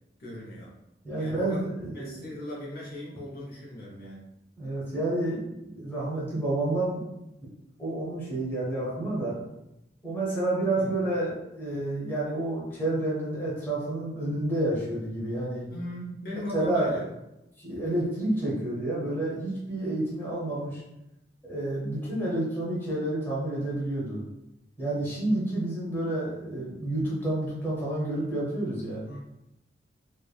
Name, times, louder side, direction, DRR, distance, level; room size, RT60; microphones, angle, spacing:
voice 1, 0.2-0.7 1.2-1.6 1.9-4.3 10.7-10.9 15.7-17.1 29.1-29.2, left 1 dB, 55° left, -4 dB, 0.7 m, -38 dB
voice 2, 1.0-2.2 4.6-7.0 7.8-9.4 10.0-15.6 16.5-17.0 17.6-20.8 21.4-24.2 24.8-29.0, right 1 dB, 10° left, -7 dB, 0.8 m, -29 dB
3.2 x 2.0 x 2.3 m, 0.88 s
head